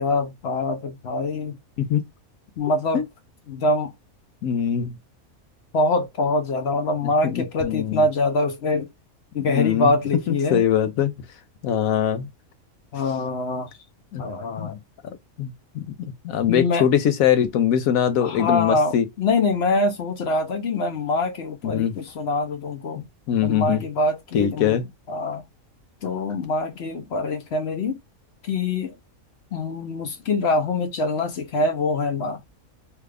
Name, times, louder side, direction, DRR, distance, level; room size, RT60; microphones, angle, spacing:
voice 1, 0.0-1.6 2.6-3.0 3.5-3.9 5.7-8.9 9.3-10.6 12.9-13.8 14.2-14.8 16.5-16.8 18.2-23.0 23.4-25.4 26.0-28.0 28.4-29.0 29.5-32.4, left 2 dB, 55° left, 0.9 m, -24 dB
voice 2, 4.4-5.0 7.2-8.0 9.5-9.9 10.3-11.1 11.6-12.3 14.1-14.2 14.6-14.7 15.4-19.0 21.6-21.9 23.3-23.8 24.3-24.8, left 9 dB, 75° left, 1.1 m, -22 dB
3.2 x 2.4 x 3.3 m
omnidirectional pair, 1.5 m